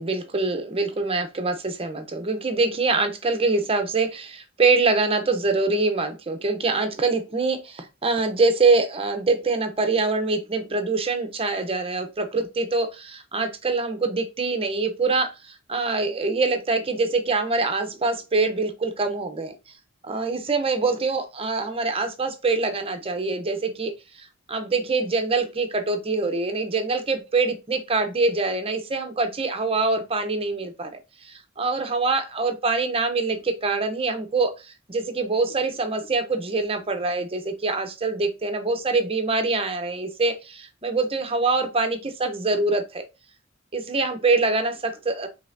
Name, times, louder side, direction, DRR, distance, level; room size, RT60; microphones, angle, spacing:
voice 1, 0.0-15.3 15.7-19.5 20.0-23.9 24.2-31.0 31.2-34.5 34.9-43.1 43.7-45.3, right 3 dB, 30° right, 0.9 m, -24 dB
5.4 x 3.5 x 2.7 m
head